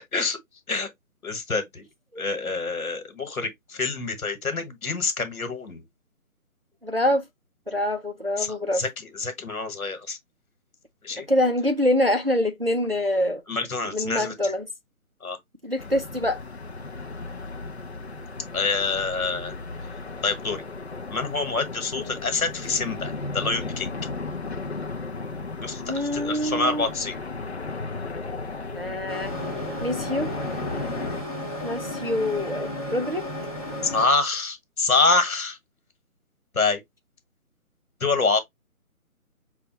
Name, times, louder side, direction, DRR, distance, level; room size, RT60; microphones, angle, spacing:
voice 1, 1.2-1.9 2.2-5.8 8.4-10.2 11.0-11.3 13.5-14.5 15.2-15.4 18.5-19.5 20.2-20.6 21.1-23.9 25.6-27.2 33.9-35.6 36.5-36.8 38.0-38.4, left 3 dB, 70° left, 1.4 m, -26 dB
voice 2, 6.8-7.2 7.7-8.8 11.1-13.4 13.9-14.7 15.6-16.4 22.0-22.1 25.8-26.8 28.7-29.3 29.8-30.3 31.6-33.3, left 1 dB, 45° right, 0.4 m, -25 dB
sound 1, 15.8-31.2, left 3 dB, 50° left, 0.5 m, -35 dB
sound 2, 29.1-34.1, left 1 dB, 25° left, 0.8 m, -33 dB
5.2 x 2.3 x 2.8 m
hypercardioid pair, 180°, 44 cm